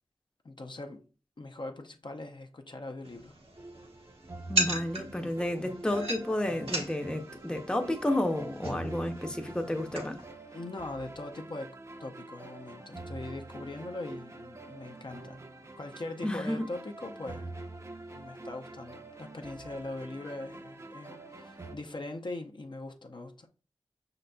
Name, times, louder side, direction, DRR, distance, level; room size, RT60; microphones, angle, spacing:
voice 1, 0.4-1.0 1.4-3.3 10.5-15.4 15.8-17.5 18.1-23.5, left 2 dB, 50° left, 0.6 m, -41 dB
sound 1, 3.0-10.3, right 2 dB, 70° right, 1.0 m, -37 dB
sound 2, 3.6-21.8, right 2 dB, 30° right, 0.6 m, -46 dB
voice 2, 4.5-10.2 16.2-16.6, left 1 dB, 10° left, 0.7 m, -31 dB
5.7 x 3.9 x 2.2 m
wide cardioid pair, 50°, 10 cm